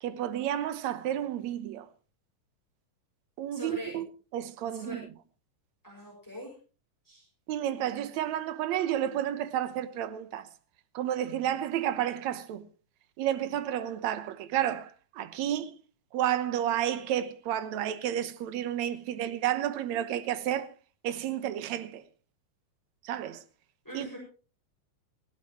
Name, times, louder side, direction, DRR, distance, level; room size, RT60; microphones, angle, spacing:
voice 1, 0.0-1.9 3.4-4.1 4.3-5.1 7.5-10.5 10.9-12.6 13.2-15.7 16.1-20.7 21.0-22.0 23.0-23.4 23.9-24.1, right 11 dB, 65° right, 2.2 m, -31 dB
voice 2, 3.5-4.0 4.7-5.0 5.8-6.5 7.0-7.2 23.8-24.2, equal, 5° left, 6.0 m, -42 dB
18.5 x 16.5 x 3.1 m
omnidirectional pair, 3.7 m